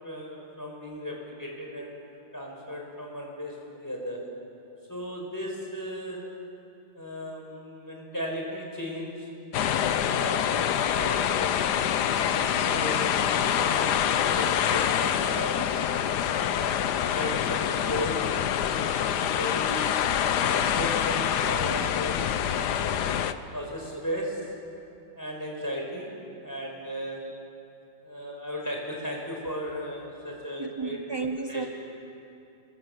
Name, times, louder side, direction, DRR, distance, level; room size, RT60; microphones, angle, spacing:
voice 1, 0.0-2.0 2.3-4.2 4.9-6.2 7.0-9.3 9.9-10.5 10.8-11.6 12.1-15.7 16.4-16.8 17.1-18.3 18.6-19.9 20.4-23.2 23.5-24.4 25.2-27.2 28.0-31.0 31.5-31.7, equal, 10° left, -1 dB, 5.4 m, -36 dB
sound 1, 9.5-23.3, left 9 dB, 65° left, 1.3 m, -26 dB
voice 2, 30.6-31.7, right 4 dB, 30° right, 4 dB, 0.4 m, -34 dB
27.0 x 22.0 x 8.1 m, 2.7 s
omnidirectional pair, 2.0 m